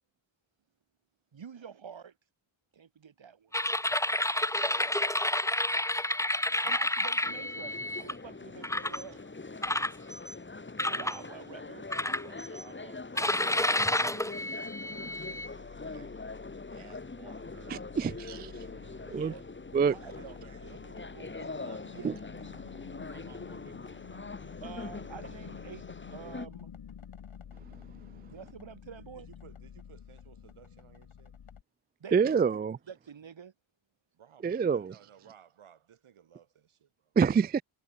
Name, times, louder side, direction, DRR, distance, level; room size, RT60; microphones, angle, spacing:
voice 1, 1.3-2.1 2.7-3.6 4.6-5.1 6.5-9.2 10.8-11.9 19.1-19.4 20.0-20.4 21.9-22.1 24.6-25.8 26.1-26.7 28.3-29.3 32.0-32.4 32.9-33.5, right 7 dB, 65° right, 6.9 m, -47 dB
sound 1, 3.5-8.1 8.6-9.0 9.6-10.3 10.8-11.2 11.9-12.6 13.2-15.5, left 1 dB, 5° left, 1.1 m, -30 dB
sound 2, 7.2-26.5, left 3 dB, 25° left, 2.5 m, -43 dB
voice 2, 12.0-16.3 16.7-18.2 19.1-19.4 19.8-22.1 22.5-24.9 29.0-31.3 34.1-37.1, right 8 dB, 80° right, 6.5 m, -57 dB
sound 3, 14.2-31.6, left 8 dB, 75° left, 7.1 m, -50 dB
voice 3, 17.7-18.5 19.1-19.3 19.7-19.9 22.0-22.1 32.1-32.8 34.4-34.9 37.2-37.6, right 6 dB, 20° right, 0.3 m, -26 dB
cardioid pair, 90°, 49 cm